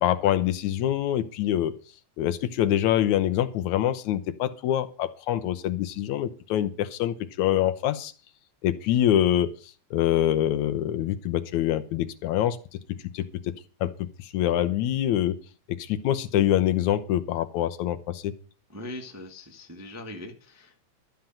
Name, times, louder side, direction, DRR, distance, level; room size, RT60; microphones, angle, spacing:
voice 1, 0.0-1.7 2.2-8.1 8.6-9.5 9.9-12.6 13.1-13.5 13.8-15.4 15.7-18.3, left 12 dB, 80° left, 10 dB, 2.2 m, -25 dB
voice 2, 18.7-20.9, left 1 dB, 10° right, 3 dB, 0.8 m, -41 dB
13.0 x 5.8 x 8.9 m, 0.38 s
omnidirectional pair, 3.4 m